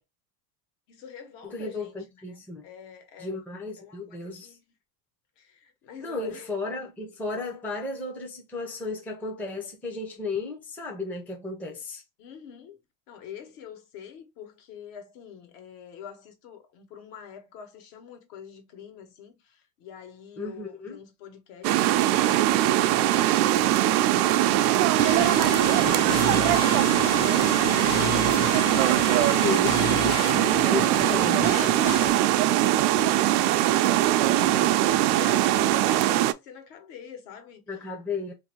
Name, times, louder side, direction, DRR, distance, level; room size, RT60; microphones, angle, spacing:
voice 1, 0.9-1.9 2.3-3.4 3.8-4.6 5.4-6.5 12.2-12.8 13.1-25.0 25.4-27.2 27.6-28.8 29.5-31.0 31.5-34.2 34.9-37.6, left 8 dB, 65° left, 1.3 m, -45 dB
voice 2, 1.4-2.7 3.2-4.6 6.0-12.0 20.4-21.0 24.1-24.3 25.7-26.4 29.2-30.2 30.6-31.6 34.3-34.7 37.7-38.3, left 3 dB, 5° left, 0.5 m, -34 dB
sound 1, 21.6-36.3, right 14 dB, 85° right, 0.5 m, -21 dB
sound 2, 25.0-32.1, left 6 dB, 50° left, 0.8 m, -32 dB
2.7 x 2.6 x 4.2 m
cardioid pair, 155°, 44 cm